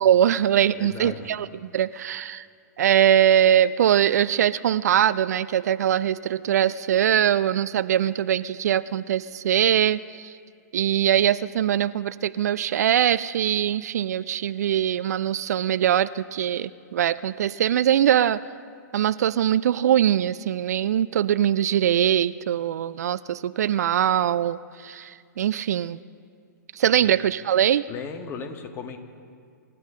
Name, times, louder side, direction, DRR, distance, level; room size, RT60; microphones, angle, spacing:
voice 1, 0.0-1.5 1.7-2.5 2.8-10.3 10.7-18.4 18.9-26.0 26.7-27.9, right 10 dB, 60° right, 17 dB, 0.4 m, -22 dB
voice 2, 0.7-1.3 27.0-27.1 27.9-29.0, left 6 dB, 25° left, 4 dB, 1.7 m, -36 dB
27.5 x 13.5 x 3.8 m, 2.3 s
figure-of-eight pair, 115°, 10 cm